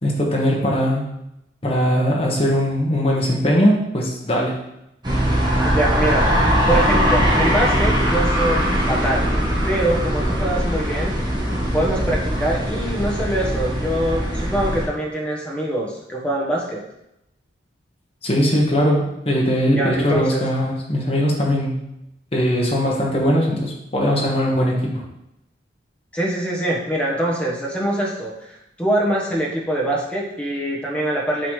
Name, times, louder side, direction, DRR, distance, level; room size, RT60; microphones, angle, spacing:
voice 1, 0.0-1.1 1.6-4.6 18.2-21.7 22.3-24.8, equal, 30° left, -2 dB, 1.4 m, -20 dB
sound 1, 5.0-14.9, equal, 25° right, 1.5 m, -20 dB
voice 2, 5.6-9.3 9.7-11.3 11.7-16.8 19.7-20.4 26.1-31.5, right 1 dB, 5° left, -3 dB, 1.3 m, -24 dB
8.0 x 4.0 x 3.3 m, 0.83 s
head